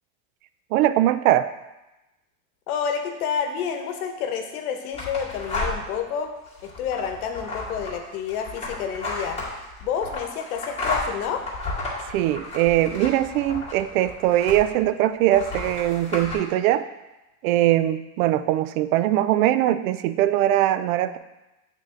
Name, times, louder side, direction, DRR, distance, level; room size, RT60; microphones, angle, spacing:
voice 1, 0.7-1.5 12.1-16.9 17.4-21.2, right 13 dB, 70° right, 12 dB, 0.5 m, -21 dB
voice 2, 2.7-6.3 6.6-9.4 9.8-11.4, left 7 dB, 80° left, 5 dB, 1.0 m, -29 dB
sound 1, 4.9-6.0 6.5-14.9 15.3-16.4, left 2 dB, 15° left, 2.0 m, -33 dB
8.1 x 3.7 x 3.7 m, 1.0 s
supercardioid pair, 145°, 43 cm